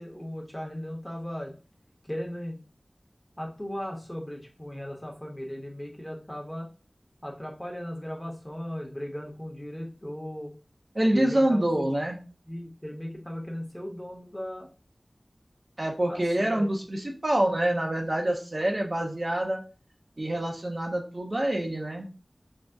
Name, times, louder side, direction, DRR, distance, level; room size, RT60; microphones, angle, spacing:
voice 1, 0.0-1.5 2.0-2.6 3.4-6.7 7.2-10.5 11.1-11.6 12.5-14.7 16.1-16.2 16.5-16.6, equal, 15° left, 0 dB, 0.9 m, -37 dB
voice 2, 10.9-12.2 15.8-19.6 20.2-22.1, right 1 dB, 50° right, 1 dB, 0.5 m, -26 dB
2.6 x 2.0 x 3.4 m, 0.35 s
wide cardioid pair, 50°, 0 cm